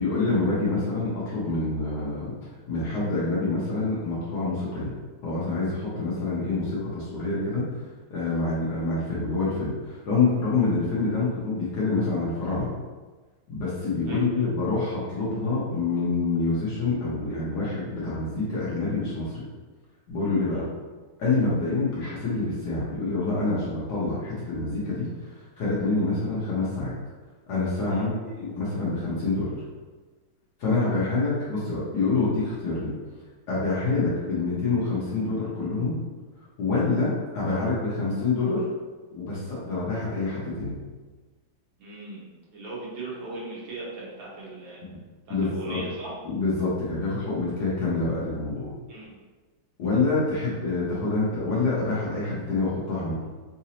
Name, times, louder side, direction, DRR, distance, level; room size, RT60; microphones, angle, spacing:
voice 1, 0.0-2.3 2.7-4.9 5.2-7.6 8.1-12.7 13.5-19.4 20.1-20.6 21.2-25.1 25.6-26.9 27.5-29.6 30.6-32.9 33.5-35.9 36.6-38.7 39.1-40.8 44.9-45.0 45.3-45.8 46.2-48.7 49.8-53.2, left 3 dB, 60° left, -7 dB, 1.3 m, -26 dB
voice 2, 14.1-14.4 20.5-20.7 27.9-28.1 41.8-45.0 45.3-46.1 48.9-49.1, right 2 dB, 65° right, -5 dB, 1.5 m, -39 dB
4.0 x 2.6 x 2.8 m, 1.3 s
omnidirectional pair, 2.3 m